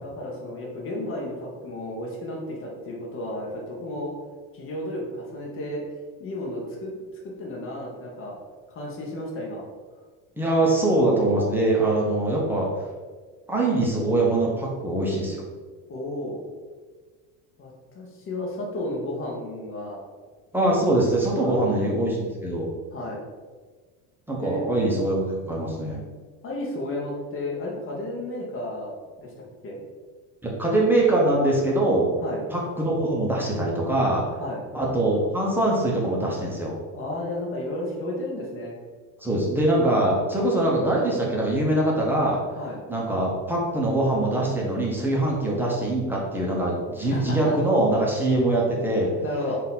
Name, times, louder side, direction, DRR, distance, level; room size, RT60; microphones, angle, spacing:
voice 1, 0.0-4.1 4.5-5.8 6.2-7.0 7.2-8.4 8.7-9.6 15.9-16.4 17.6-20.0 21.4-21.6 22.9-23.2 24.3-24.7 26.4-29.3 29.6-29.8 32.2-32.4 34.4-34.6 36.9-38.8 42.6-42.8 47.1-47.5 49.2-49.6, left 1 dB, 35° left, -2 dB, 1.0 m, -33 dB
voice 2, 10.4-12.7 13.5-15.4 20.5-22.7 24.3-26.0 30.4-32.1 32.5-34.2 34.7-36.7 39.2-42.4 42.9-49.1, right 1 dB, 5° right, -4 dB, 0.8 m, -23 dB
3.9 x 2.7 x 4.1 m, 1.4 s
cardioid pair, 135°, 35 cm